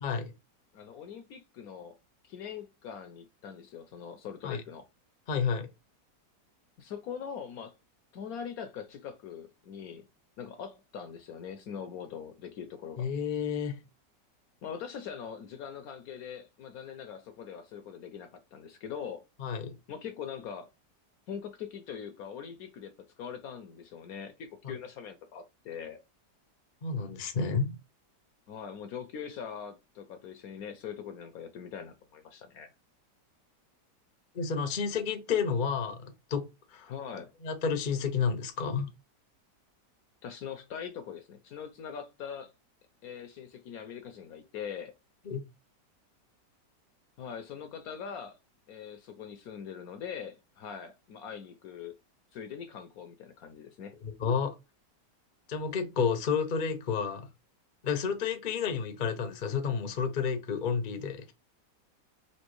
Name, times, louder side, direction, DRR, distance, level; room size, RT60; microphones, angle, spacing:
voice 1, 0.0-0.3 4.4-4.6 5.3-5.7 13.0-13.8 19.4-19.8 24.6-24.7 26.8-27.7 34.3-36.5 36.7-36.9 37.4-38.9 45.3-45.4 54.0-54.5 55.5-57.3 57.8-61.3, left 6 dB, 50° left, 0.5 m, -30 dB
voice 2, 0.7-1.9 2.2-4.9 6.8-7.7 8.1-10.1 10.4-13.1 14.6-19.2 19.9-20.7 21.3-22.9 23.2-26.0 28.5-32.7 36.9-37.3 40.2-42.5 43.0-44.9 47.2-48.4 48.7-52.0 52.3-53.9, left 7 dB, 70° left, 0.9 m, -42 dB
4.3 x 2.6 x 3.0 m
omnidirectional pair, 1.9 m